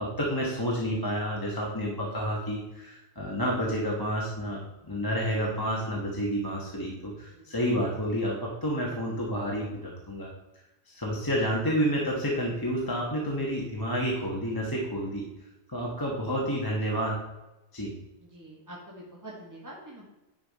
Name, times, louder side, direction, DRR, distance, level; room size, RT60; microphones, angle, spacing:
voice 1, 0.0-10.3 10.8-15.3 15.7-17.2 17.7-17.9, equal, 20° left, -3 dB, 1.4 m, -30 dB
voice 2, 18.2-20.0, right 1 dB, 20° right, -4 dB, 1.6 m, -45 dB
10.0 x 5.7 x 4.2 m, 0.98 s
omnidirectional pair, 1.1 m